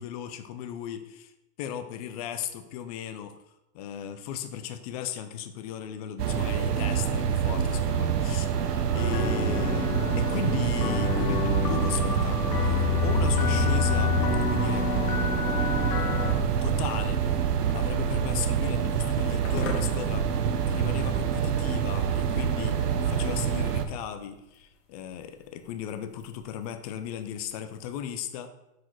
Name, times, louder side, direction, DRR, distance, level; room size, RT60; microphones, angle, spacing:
voice 1, 0.0-1.3 1.6-3.3 3.7-14.9 16.2-17.4 17.7-28.5, left 9 dB, 25° left, 8 dB, 0.4 m, -37 dB
sound 1, 6.2-23.9, right 8 dB, 90° right, 0.8 m, -26 dB
sound 2, 8.9-16.3, left 8 dB, 80° left, 1.0 m, -28 dB
sound 3, 13.6-27.9, left 4 dB, 55° left, 1.4 m, -48 dB
6.0 x 4.7 x 4.5 m, 0.92 s
hypercardioid pair, 120°, 46 cm